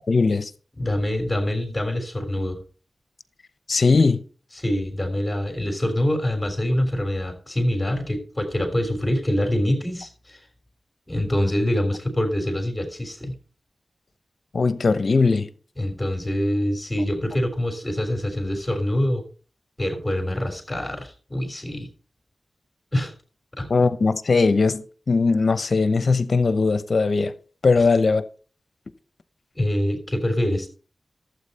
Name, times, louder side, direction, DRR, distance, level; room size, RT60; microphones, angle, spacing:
voice 1, 0.1-0.5 3.7-4.2 14.5-15.5 23.7-27.3 27.6-28.2, left 4 dB, 65° left, 0.8 m, -19 dB
voice 2, 0.7-2.6 4.5-10.5 11.1-13.3 15.8-19.2 19.8-21.9 22.9-23.1 23.6-23.7 27.8-27.9 29.5-30.7, left 1 dB, 20° left, 3.4 m, -25 dB
12.0 x 8.2 x 4.2 m
cardioid pair, 40°, 0 cm